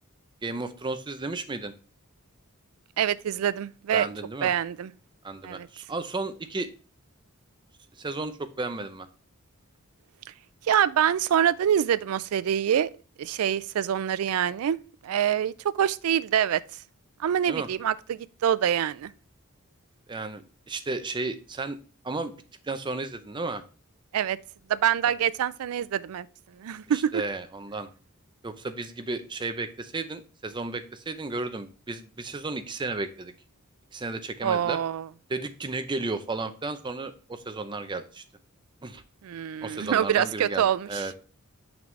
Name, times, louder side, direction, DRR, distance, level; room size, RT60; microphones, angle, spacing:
voice 1, 0.4-1.7 3.9-4.5 5.2-6.7 8.0-9.1 17.5-17.7 20.1-21.8 22.0-22.3 22.6-23.6 26.9-27.9 28.4-33.3 33.9-34.8 35.3-38.2 38.8-39.0 39.6-41.1, right 3 dB, 20° right, 0.5 m, -33 dB
voice 2, 3.0-4.1 4.4-4.9 5.4-5.7 10.6-12.9 13.2-14.8 15.0-16.6 17.2-19.1 24.1-24.4 24.7-26.3 26.6-27.2 34.4-35.1 39.2-41.0, right 9 dB, 85° right, 0.3 m, -25 dB
5.9 x 5.3 x 3.1 m
head